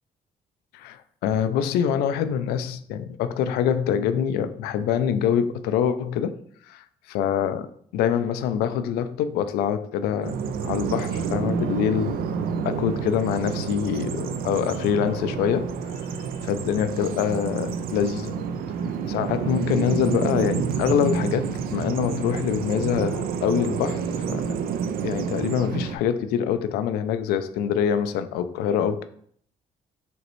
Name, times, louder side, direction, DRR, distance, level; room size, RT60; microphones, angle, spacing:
voice 1, 0.7-6.3 6.7-12.2 12.6-15.8 16.4-18.3 19.1-24.5 25.0-29.0, left 8 dB, 90° left, 0.4 m, -25 dB
Bird vocalization bird call bird song, 10.2-26.0, right 6 dB, 70° right, 0.4 m, -29 dB
5.0 x 3.1 x 3.0 m
supercardioid pair, 75°, 16 cm